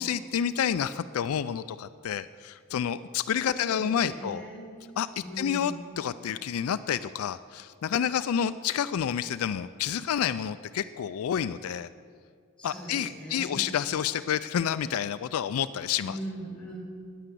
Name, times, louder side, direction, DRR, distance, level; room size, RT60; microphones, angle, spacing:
voice 1, 0.0-4.4 5.0-5.1 5.4-11.9 12.6-16.2, left 8 dB, 75° left, 13 dB, 0.3 m, -29 dB
voice 2, 3.5-4.7 5.2-5.7 12.6-13.6 16.0-16.8, equal, 5° left, -3 dB, 4.4 m, -40 dB
10.0 x 9.7 x 8.4 m, 2.1 s
head